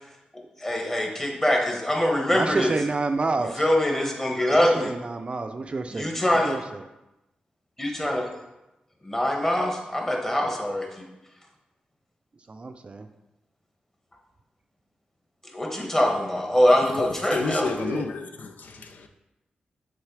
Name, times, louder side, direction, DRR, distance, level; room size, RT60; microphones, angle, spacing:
voice 1, 0.3-2.7 3.6-4.9 5.9-6.6 7.8-8.3 9.0-11.0 15.5-17.7, left 1 dB, 15° left, 1.4 m, -23 dB
voice 2, 2.3-3.6 4.5-6.1 6.4-6.8 12.5-13.1 17.8-18.1, right 3 dB, 40° right, 0.4 m, -29 dB
voice 3, 16.7-19.1, left 4 dB, 75° left, 0.5 m, -31 dB
6.4 x 3.7 x 4.8 m
cardioid pair, 75°, 3 cm